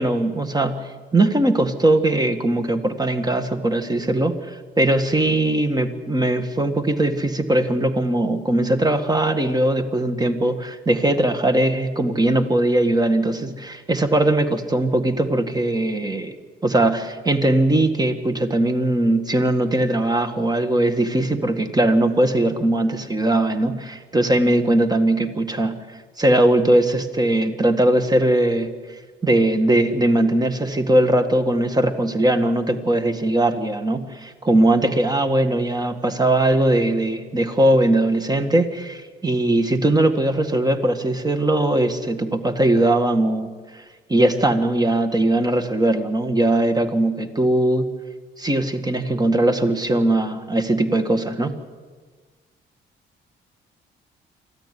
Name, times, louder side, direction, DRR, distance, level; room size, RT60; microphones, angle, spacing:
voice 1, 0.0-16.4 16.6-25.8 26.2-28.7 29.2-43.8 44.1-47.9 48.4-51.6, right 1 dB, 20° right, 8 dB, 1.9 m, -20 dB
24.0 x 15.0 x 9.5 m, 1.5 s
cardioid pair, 90°, 20 cm